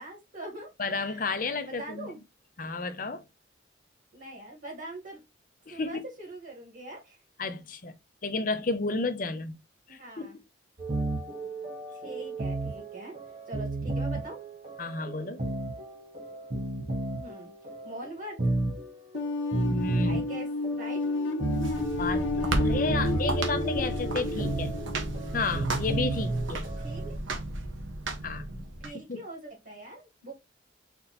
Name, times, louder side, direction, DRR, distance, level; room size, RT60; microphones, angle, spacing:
voice 1, 0.0-0.7 1.0-1.2 1.6-2.2 4.1-5.2 5.7-7.2 9.9-10.4 11.9-13.1 13.5-14.4 17.2-17.5 17.8-18.5 20.0-21.0 26.8-27.2 28.8-30.3, right 1 dB, 55° right, 2.1 m, -42 dB
voice 2, 0.8-2.1 2.6-3.2 5.7-6.0 7.4-7.9 8.2-9.5 9.9-10.3 14.8-15.5 19.7-20.2 22.0-24.7 25.3-26.7 28.2-28.6 29.1-29.2, left 3 dB, 45° left, 0.7 m, -32 dB
sound 1, 10.8-27.1, right 2 dB, 40° right, 1.0 m, -33 dB
sound 2, 19.1-26.0, left 3 dB, 80° left, 0.9 m, -32 dB
sound 3, 21.4-28.9, right 2 dB, 85° right, 1.0 m, -33 dB
4.4 x 2.7 x 4.1 m
head